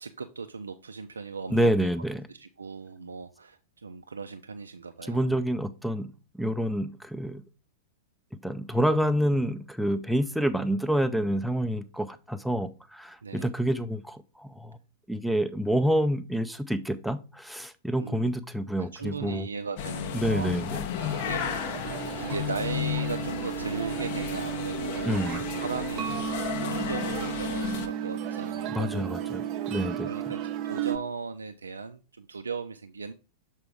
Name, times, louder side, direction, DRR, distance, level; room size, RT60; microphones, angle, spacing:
voice 1, 0.0-1.7 2.3-5.3 13.2-13.5 18.0-18.4 18.8-21.7 22.2-25.1 25.6-26.3 26.6-33.1, right 5 dB, 75° right, 7 dB, 0.4 m, -38 dB
voice 2, 1.5-2.3 5.1-7.4 8.4-14.8 15.1-19.5 20.1-20.8 25.1-25.4 28.8-30.1, equal, ahead, 12 dB, 0.5 m, -28 dB
sound 1, 19.8-27.9, left 10 dB, 50° left, 0.7 m, -33 dB
sound 2, 21.0-31.0, right 10 dB, 40° right, 0.7 m, -34 dB
6.8 x 4.5 x 3.5 m, 0.33 s
figure-of-eight pair, 95°, 0 cm